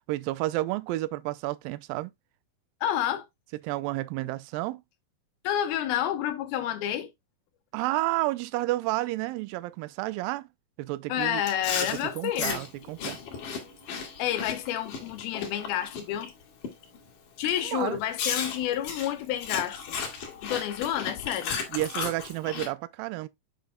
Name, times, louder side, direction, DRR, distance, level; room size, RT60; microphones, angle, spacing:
voice 1, 0.1-2.1 3.6-4.8 7.7-10.5 10.8-11.4 11.9-13.2 17.6-18.0 21.7-23.3, right 17 dB, 80° right, 2.2 m, -31 dB
voice 2, 2.8-3.3 5.4-7.1 11.1-12.6 14.2-16.3 17.4-20.0 20.4-21.6, left 11 dB, 85° left, 2.9 m, -29 dB
Chewing mastication, 11.4-16.3 16.6-17.0 17.4-17.6 18.2-22.7, left 6 dB, 65° left, 3.3 m, -34 dB
7.6 x 7.0 x 2.2 m
omnidirectional pair, 4.2 m